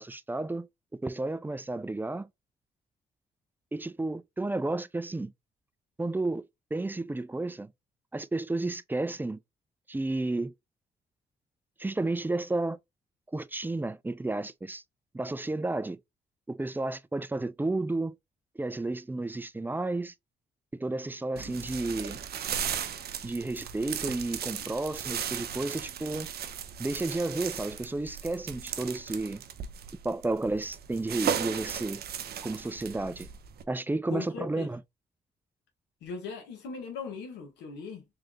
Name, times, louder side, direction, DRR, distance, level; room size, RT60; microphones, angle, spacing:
voice 1, 0.0-2.3 3.7-5.3 6.0-7.7 8.1-9.4 9.9-10.5 11.8-12.8 13.3-14.8 15.1-16.0 16.5-18.2 18.6-20.1 20.7-22.2 23.2-26.3 26.8-29.4 30.0-32.0 32.4-33.3 33.7-34.8, right 2 dB, 10° right, 0.4 m, -32 dB
sound 1, 21.4-33.6, right 8 dB, 65° right, 0.6 m, -36 dB
voice 2, 34.1-34.7 36.0-38.0, left 5 dB, 90° left, 1.4 m, -39 dB
3.4 x 3.2 x 2.3 m
supercardioid pair, 55°, 18 cm